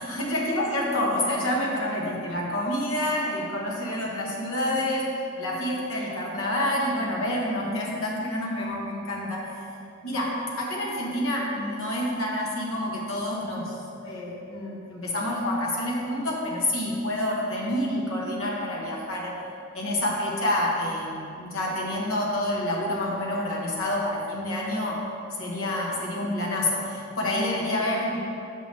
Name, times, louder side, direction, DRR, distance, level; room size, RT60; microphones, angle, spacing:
voice 1, 0.0-9.4 10.0-19.3 19.7-25.0 25.4-28.2, left 1 dB, 70° left, -3 dB, 1.4 m, -28 dB
6.7 x 5.9 x 3.5 m, 2.7 s
head